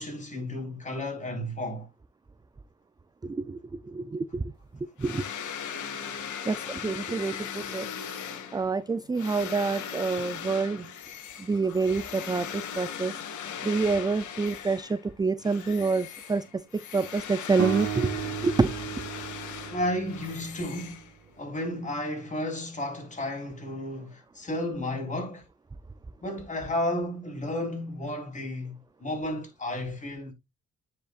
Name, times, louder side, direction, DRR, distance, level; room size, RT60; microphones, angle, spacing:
voice 1, 0.0-1.9 19.7-21.0 21.4-25.4 26.2-30.3, left 1 dB, 25° left, 4.2 m, -33 dB
voice 2, 3.2-4.5 5.0-5.2 6.4-7.9 8.5-10.9 11.4-13.1 13.6-16.4 16.7-18.7, right 4 dB, 15° right, 0.4 m, -27 dB
sound 1, 5.0-15.1 15.4-21.4, left 8 dB, 75° left, 1.7 m, -39 dB
sound 2, 17.6-20.8, right 11 dB, 60° right, 0.9 m, -34 dB
9.4 x 5.2 x 2.4 m
cardioid pair, 90°, 30 cm